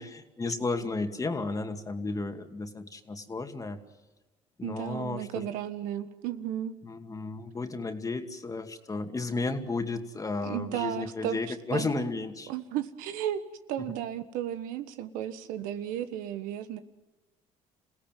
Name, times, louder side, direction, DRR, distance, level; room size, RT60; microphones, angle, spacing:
voice 1, 0.0-3.8 4.6-5.4 6.8-12.5 13.8-13.9, left 3 dB, 25° left, 6 dB, 2.4 m, -33 dB
voice 2, 4.6-6.7 10.4-11.9 12.5-16.8, right 11 dB, 80° right, 10 dB, 1.5 m, -34 dB
27.5 x 17.0 x 9.2 m, 1.1 s
supercardioid pair, 90°, 14 cm